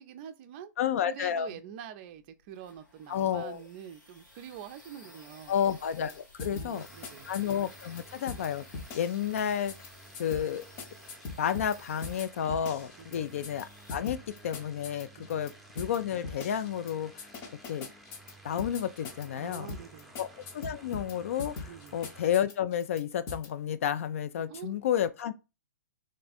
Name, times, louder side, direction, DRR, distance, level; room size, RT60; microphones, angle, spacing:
voice 1, 0.0-0.7 1.1-5.6 6.4-7.3 13.0-13.3 15.2-15.4 19.4-20.1 21.7-22.0 24.5-24.8, right 9 dB, 30° right, 0.5 m, -46 dB
voice 2, 0.8-1.5 3.1-3.6 5.5-6.9 7.2-8.6 8.9-9.7 10.2-10.6 11.4-17.3 17.7-17.9 18.4-19.7 20.2-20.3 20.5-25.3, left 9 dB, 45° left, 0.4 m, -31 dB
sound 1, 2.1-14.9, left 2 dB, 80° left, 1.7 m, -56 dB
sound 2, 6.1-6.2 6.4-8.0 8.3-8.5 8.7-9.4 9.7-9.9 10.1-11.8 12.0-13.6 13.9-15.5 15.8-16.0 16.2-16.9 17.2-19.3 19.5-21.1 21.4-23.0 23.3-23.5, left 4 dB, 30° left, 0.8 m, -40 dB
sound 3, 6.7-22.4, right 2 dB, ahead, 0.7 m, -53 dB
3.3 x 3.2 x 4.0 m
figure-of-eight pair, 115°, 10 cm